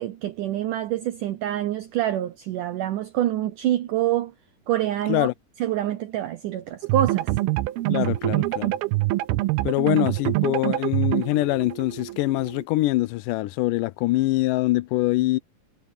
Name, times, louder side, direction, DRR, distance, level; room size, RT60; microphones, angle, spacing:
voice 1, 0.0-4.3 4.7-5.3 5.6-7.3, right 12 dB, 70° right, 2.2 m, -26 dB
sound 1, 6.8-12.6, right 18 dB, 85° right, 2.7 m, -25 dB
voice 2, 7.9-8.7 9.6-15.4, left 18 dB, 85° left, 1.9 m, -24 dB
omnidirectional pair, 4.4 m